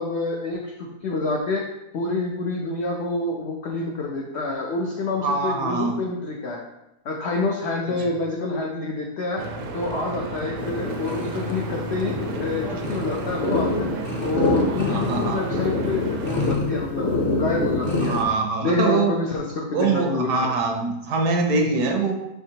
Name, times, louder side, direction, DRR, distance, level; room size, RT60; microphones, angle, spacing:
voice 1, 0.0-6.6 7.0-9.5 9.7-12.1 12.4-13.9 14.2-18.2 18.6-20.5, left 3 dB, 80° left, 0 dB, 0.5 m, -27 dB
voice 2, 5.2-6.0 8.0-8.1 14.9-15.5 18.0-19.1 19.7-22.1, right 3 dB, 85° right, 3 dB, 1.4 m, -23 dB
Stream / Boat Water vehicle, 9.4-16.6, right 3 dB, 70° right, 0.7 m, -33 dB
sound 1, 10.6-18.2, left 2 dB, 45° left, 0.8 m, -26 dB
5.5 x 3.5 x 2.8 m, 0.92 s
omnidirectional pair, 1.8 m